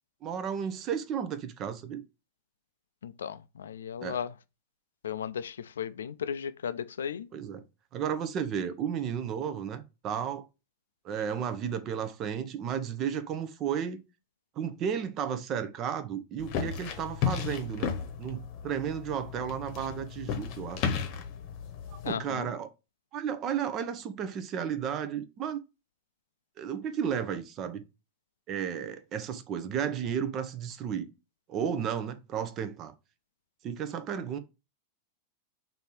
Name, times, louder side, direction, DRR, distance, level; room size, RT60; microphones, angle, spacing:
voice 1, 0.2-2.0 4.0-4.2 7.3-7.6 7.9-10.4 11.0-14.0 14.6-17.9 18.2-20.9 21.9-22.7 23.1-25.6 26.6-27.8 28.5-31.1 31.5-32.9 33.6-34.4, right 8 dB, 40° right, 0.6 m, -33 dB
voice 2, 3.0-4.3 5.0-7.3 22.0-22.5, left 8 dB, 85° left, 0.3 m, -35 dB
sound 1, 16.4-22.1, left 7 dB, 50° left, 0.8 m, -34 dB
3.3 x 2.7 x 4.3 m
hypercardioid pair, 110°, 0 cm